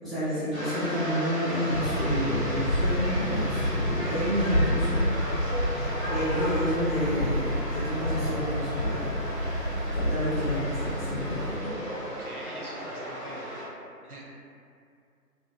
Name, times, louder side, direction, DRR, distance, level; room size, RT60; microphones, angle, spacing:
voice 1, 0.0-5.0 6.1-9.1 9.9-11.7, equal, ahead, -16 dB, 0.6 m, -30 dB
sound 1, 0.5-13.7, equal, 45° left, 0.5 m, -35 dB
sound 2, 1.7-11.6, equal, 85° left, 0.8 m, -29 dB
voice 2, 5.5-5.8 12.0-13.4 14.0-14.3, right 1 dB, 65° right, -4 dB, 0.5 m, -45 dB
2.6 x 2.3 x 2.3 m, 2.4 s
figure-of-eight pair, 175°, 49 cm